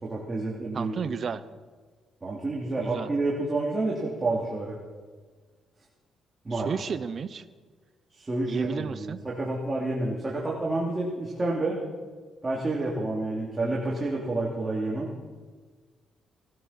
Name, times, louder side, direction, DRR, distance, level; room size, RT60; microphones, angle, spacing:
voice 1, 0.0-0.9 2.2-4.8 6.4-6.7 8.1-11.8 12.4-15.1, right 2 dB, 25° right, -4 dB, 2.9 m, -29 dB
voice 2, 0.7-1.4 2.7-3.1 6.5-7.4 8.5-9.2, right 6 dB, 50° right, 14 dB, 0.8 m, -32 dB
18.5 x 13.0 x 5.9 m, 1.4 s
cardioid pair, 90°, 0 cm